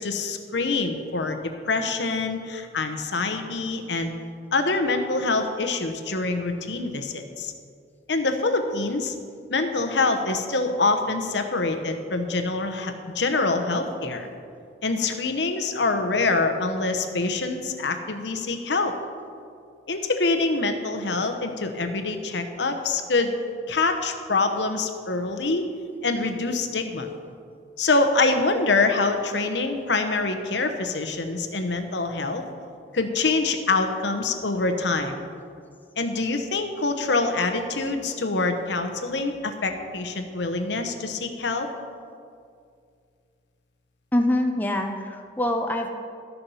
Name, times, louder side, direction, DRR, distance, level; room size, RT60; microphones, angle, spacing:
voice 1, 0.0-1.4 1.7-4.2 4.5-7.5 8.1-9.1 9.5-14.3 14.8-18.9 19.9-23.3 23.7-25.7 26.0-27.1 27.8-32.4 32.9-35.2 36.0-41.7, left 3 dB, 75° left, 6 dB, 0.9 m, -25 dB
voice 2, 44.1-45.9, left 1 dB, 10° left, 3 dB, 0.6 m, -24 dB
13.0 x 7.0 x 5.6 m, 2.3 s
head